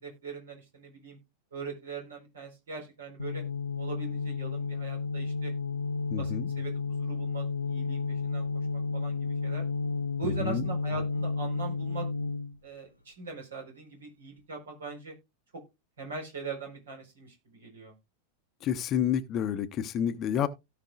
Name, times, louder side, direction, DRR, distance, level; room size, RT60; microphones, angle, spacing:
voice 1, 0.0-1.2 1.5-3.4 3.8-5.5 6.2-8.5 8.9-9.6 10.2-12.1 12.6-15.1 16.0-17.9, right 4 dB, 65° right, 4.3 m, -41 dB
sound 1, 3.2-12.6, left 4 dB, 80° left, 0.6 m, -32 dB
voice 2, 6.1-6.5 10.4-10.6 18.6-20.5, left 9 dB, 30° left, 0.8 m, -29 dB
17.0 x 5.7 x 2.4 m
figure-of-eight pair, 90°, 0 cm